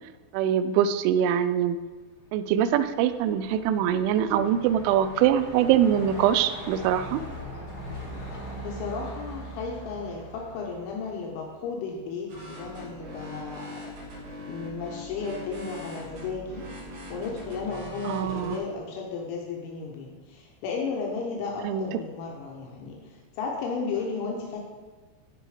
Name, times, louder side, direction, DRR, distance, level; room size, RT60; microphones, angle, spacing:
voice 1, 0.3-1.8 2.3-7.2 18.0-18.6 21.6-21.9, right 9 dB, 85° right, 12 dB, 3.0 m, -23 dB
Truck, 2.2-11.6, equal, 50° left, 1.1 m, -41 dB
voice 2, 8.6-13.7 14.5-16.7 17.1-24.6, left 4 dB, 80° left, -1 dB, 3.4 m, -34 dB
sound 1, 12.3-18.6, left 1 dB, 65° right, 5.3 m, -41 dB
13.0 x 4.7 x 4.9 m, 1.3 s
omnidirectional pair, 5.4 m